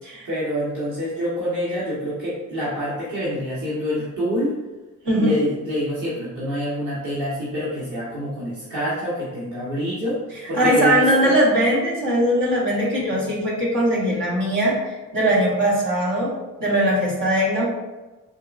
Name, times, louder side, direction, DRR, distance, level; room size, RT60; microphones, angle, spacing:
voice 1, 0.2-4.5 5.2-10.2 10.5-11.4, equal, 60° right, -8 dB, 1.1 m, -26 dB
voice 2, 10.5-16.3 16.6-17.7, right 1 dB, 85° right, -4 dB, 1.2 m, -20 dB
4.5 x 2.5 x 2.4 m, 1.2 s
supercardioid pair, 60°, 34 cm